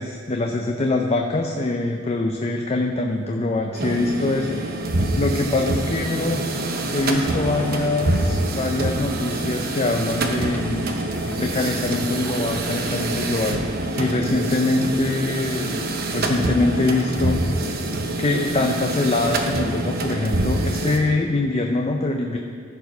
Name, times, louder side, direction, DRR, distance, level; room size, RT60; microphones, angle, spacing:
voice 1, 0.0-4.6 5.2-6.4 6.9-10.9 11.4-13.6 14.0-15.8 16.1-17.4 18.2-22.4, left 2 dB, 30° left, 2 dB, 0.5 m, -23 dB
sound 1, 3.7-21.0, right 2 dB, 50° right, 0.9 m, -26 dB
sound 2, 7.1-13.0, equal, 10° left, 0.9 m, -39 dB
13.5 x 4.6 x 5.4 m, 2.3 s
head